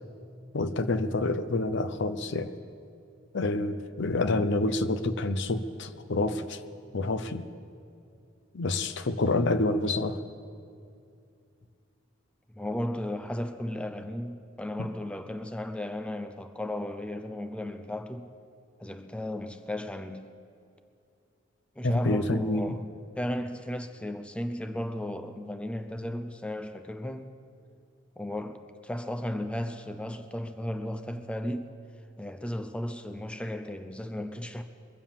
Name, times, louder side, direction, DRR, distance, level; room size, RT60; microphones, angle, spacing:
voice 1, 0.5-2.5 3.3-6.6 6.9-7.5 8.5-10.2 14.8-14.9 21.8-22.7, left 2 dB, 60° left, 0.6 m, -28 dB
voice 2, 12.6-18.3 18.8-20.3 21.8-22.9 23.1-27.3 28.2-31.7 32.2-34.6, left 1 dB, 5° left, 0.5 m, -35 dB
22.0 x 7.4 x 7.2 m
head